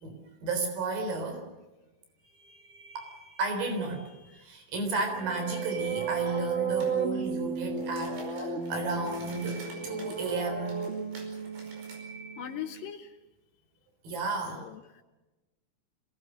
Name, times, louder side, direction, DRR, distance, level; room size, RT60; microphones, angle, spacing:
voice 1, 0.0-1.5 2.3-10.9 14.0-14.7, right 3 dB, 60° right, 5 dB, 5.7 m, -33 dB
sound 1, 2.2-3.9 4.9-6.7 8.7-10.8 11.3-12.8, right 3 dB, 5° left, 5.8 m, -51 dB
sound 2, 5.1-12.9, right 5 dB, 30° right, 1.4 m, -34 dB
sound 3, 6.8-7.0 7.4-12.0, right 2 dB, 85° right, 7.2 m, -50 dB
voice 2, 12.4-13.2 14.5-15.0, left 10 dB, 75° left, 7 dB, 2.1 m, -40 dB
26.5 x 20.0 x 6.4 m, 1.1 s
omnidirectional pair, 4.7 m